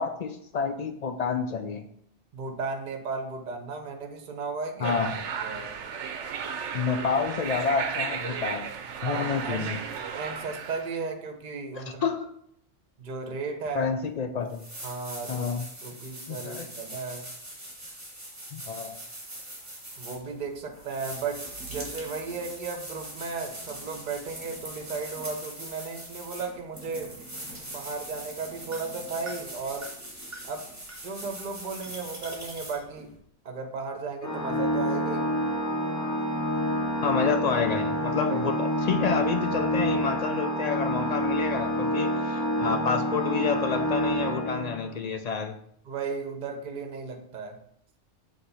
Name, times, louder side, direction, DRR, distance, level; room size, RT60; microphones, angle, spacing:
voice 1, 0.0-1.9 4.8-5.2 6.7-8.7 9.0-9.8 11.8-12.3 13.7-14.6 15.3-15.7 16.3-16.7 18.5-19.0 37.0-45.6, left 5 dB, 70° left, 6 dB, 0.3 m, -29 dB
voice 2, 2.3-5.0 5.4-5.7 9.1-9.7 10.1-12.1 13.0-13.9 14.8-15.5 15.8-17.3 20.0-27.2 27.6-29.9 30.4-30.7 31.0-33.2 33.4-35.3 38.3-38.6 45.9-47.6, right 4 dB, 45° right, 4 dB, 0.9 m, -35 dB
sound 1, 4.8-11.0, right 7 dB, 75° right, 0.9 m, -34 dB
sound 2, 14.0-14.1 14.5-33.2, right 1 dB, 15° right, 1.3 m, -42 dB
Organ, 34.2-45.0, equal, 20° left, 0.5 m, -28 dB
7.8 x 3.3 x 4.1 m, 0.70 s
omnidirectional pair, 1.2 m